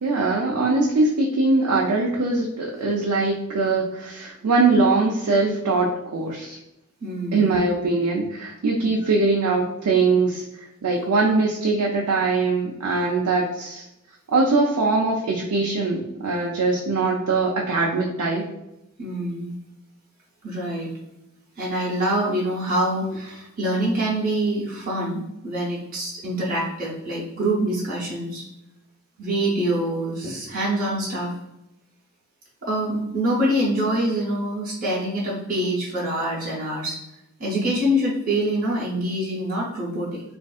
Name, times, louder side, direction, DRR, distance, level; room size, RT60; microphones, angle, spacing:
voice 1, 0.0-6.6 7.3-10.4 10.8-13.8 14.3-18.4, right 3 dB, 90° right, -2 dB, 0.5 m, -22 dB
voice 2, 7.0-7.6 19.0-19.6 20.4-20.9 21.6-28.4 29.2-31.3 32.6-37.0 37.4-40.2, right 1 dB, 40° right, -6 dB, 0.8 m, -25 dB
3.5 x 2.5 x 2.3 m, 0.88 s
head